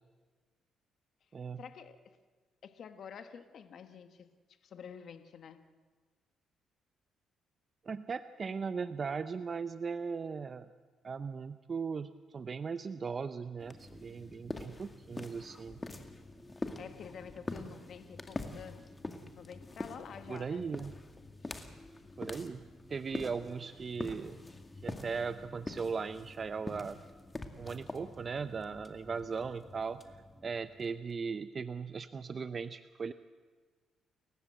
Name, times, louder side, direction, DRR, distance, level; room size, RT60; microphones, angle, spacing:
voice 1, 1.6-2.2 2.6-4.3 4.6-5.6 16.8-18.9 19.3-20.7 21.4-21.5, left 7 dB, 60° left, 9 dB, 1.5 m, -49 dB
voice 2, 7.8-10.7 11.0-15.8 20.3-20.9 22.2-22.6 22.9-24.4 24.8-27.0 27.6-30.2 30.4-33.1, right 5 dB, 40° right, 12 dB, 0.7 m, -38 dB
sound 1, 13.6-31.1, left 2 dB, 20° left, 2.2 m, -45 dB
30.0 x 15.5 x 7.9 m, 1.4 s
cardioid pair, 90°, 0 cm